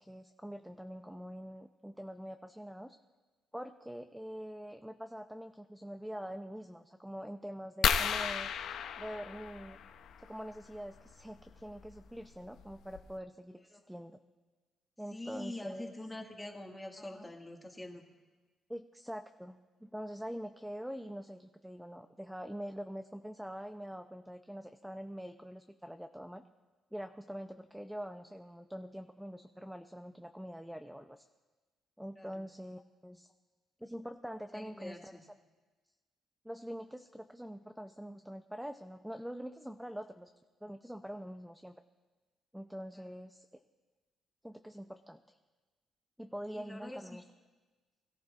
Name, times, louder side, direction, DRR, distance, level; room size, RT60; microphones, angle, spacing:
voice 1, 0.0-3.0 3.5-8.5 9.0-9.8 10.2-14.2 15.0-15.9 17.1-17.3 18.7-26.4 26.9-31.2 32.0-33.3 33.8-35.2 36.4-40.3 40.6-41.8 42.5-43.5 44.4-45.4 46.2-47.2, equal, 5° right, 7 dB, 0.5 m, -44 dB
sound 1, 7.8-10.2 11.8-12.0 12.6-12.7 12.9-13.2, left 8 dB, 75° left, 0.6 m, -33 dB
voice 2, 15.1-18.0 32.2-32.5 34.5-35.2 42.9-43.1 46.5-47.2, left 1 dB, 10° left, 1 dB, 1.7 m, -45 dB
21.0 x 14.0 x 2.5 m, 1.3 s
cardioid pair, 90°, 0 cm